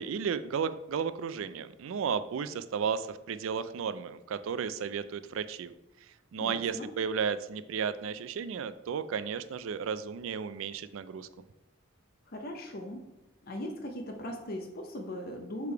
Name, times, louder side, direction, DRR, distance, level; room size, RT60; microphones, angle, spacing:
voice 1, 0.0-5.7 6.3-11.3, right 6 dB, 70° right, 13 dB, 0.4 m, -33 dB
voice 2, 6.4-6.9 12.3-13.1 13.4-15.7, left 1 dB, 50° left, 3 dB, 0.7 m, -39 dB
6.6 x 3.5 x 4.5 m, 0.97 s
head